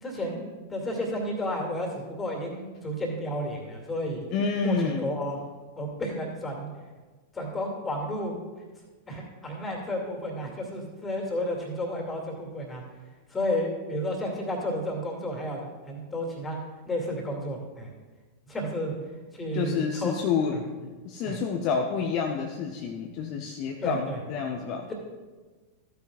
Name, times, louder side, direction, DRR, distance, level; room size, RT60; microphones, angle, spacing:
voice 1, 0.0-4.3 4.6-5.4 5.8-6.7 7.3-8.4 9.1-12.8 13.3-16.6 16.9-17.9 18.5-19.0 19.3-20.1 20.5-20.6 21.2-21.4 23.8-24.2 24.9-25.0, equal, 15° left, 1 dB, 2.5 m, -32 dB
voice 2, 4.3-5.1 19.5-24.9, left 5 dB, 40° left, 3 dB, 0.7 m, -29 dB
14.5 x 9.4 x 2.5 m, 1.3 s
figure-of-eight pair, 90°, 0 cm